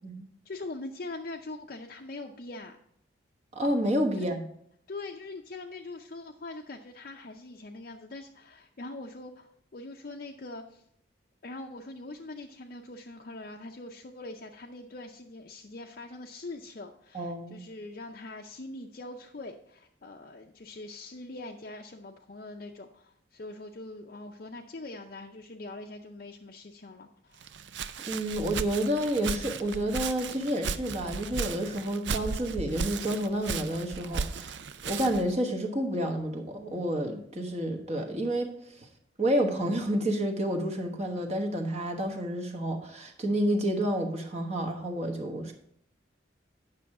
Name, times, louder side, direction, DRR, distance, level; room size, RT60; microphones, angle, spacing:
voice 1, 0.4-2.8 4.2-4.4 4.9-10.8 11.4-27.5, left 2 dB, 50° left, 0 dB, 0.6 m, -43 dB
voice 2, 3.5-4.5 17.1-17.6 28.1-38.9 39.2-45.5, right 1 dB, 35° right, 3 dB, 1.2 m, -30 dB
Walk footsteps, 27.4-35.3, right 5 dB, 65° right, 0.5 m, -35 dB
9.4 x 6.4 x 4.7 m, 0.70 s
head